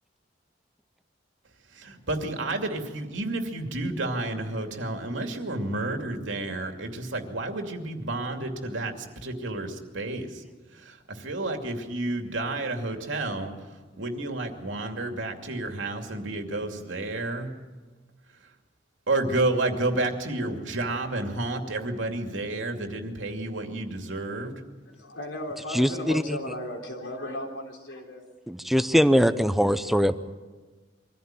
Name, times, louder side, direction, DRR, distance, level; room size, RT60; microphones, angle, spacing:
voice 1, 1.7-10.4 10.8-13.5 14.0-17.5 19.1-24.5, right 2 dB, 90° right, 4 dB, 2.6 m, -30 dB
voice 2, 24.9-28.2, left 1 dB, 90° left, 1 dB, 4.0 m, -36 dB
voice 3, 25.7-26.4 28.5-30.1, equal, ahead, 11 dB, 0.7 m, -22 dB
23.5 x 15.0 x 9.1 m, 1.3 s
head